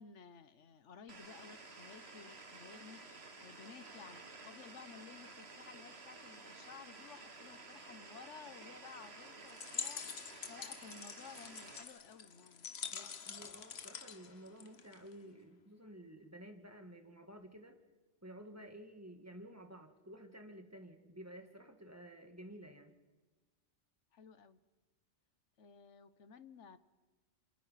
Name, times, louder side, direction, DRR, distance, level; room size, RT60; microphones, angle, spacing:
voice 1, 0.0-13.2 24.1-24.6 25.6-26.8, left 6 dB, 80° left, 13 dB, 1.4 m, -55 dB
sound 1, 1.1-11.8, right 3 dB, 60° right, 2.3 m, -53 dB
sound 2, 9.5-15.1, left 6 dB, 60° left, 1.4 m, -46 dB
voice 2, 12.9-17.7 18.2-23.0, right 1 dB, 15° right, 6 dB, 2.1 m, -53 dB
28.5 x 26.5 x 5.9 m, 1.2 s
omnidirectional pair, 1.2 m